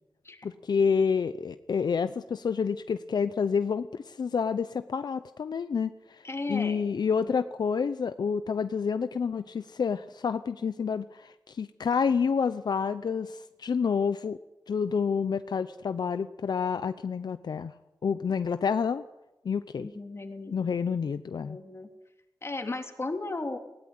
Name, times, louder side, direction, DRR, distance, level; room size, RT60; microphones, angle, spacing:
voice 1, 0.4-14.4 14.7-17.7 18.0-19.0 19.4-19.9 20.5-21.6, left 6 dB, 75° left, 11 dB, 0.7 m, -29 dB
voice 2, 6.2-6.8 7.2-7.3 19.8-20.8 21.4-21.9 22.4-23.6, left 2 dB, 35° left, 4 dB, 3.2 m, -35 dB
19.5 x 17.0 x 9.8 m, 0.96 s
wide cardioid pair, 80°, 7 cm